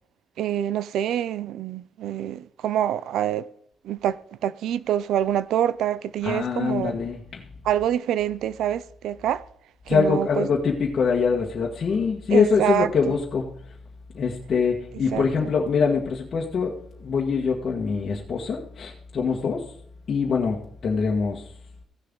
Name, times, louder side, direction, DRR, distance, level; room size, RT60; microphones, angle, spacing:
voice 1, 0.4-3.5 3.8-7.0 7.6-9.4 9.9-10.5 12.3-13.1 15.1-15.3, right 10 dB, 80° right, 0.5 m, -26 dB
voice 2, 6.2-7.4 9.9-13.6 14.1-19.7 20.1-21.5, left 5 dB, 50° left, 1.7 m, -24 dB
16.0 x 6.6 x 3.9 m
cardioid pair, 90°, 0 cm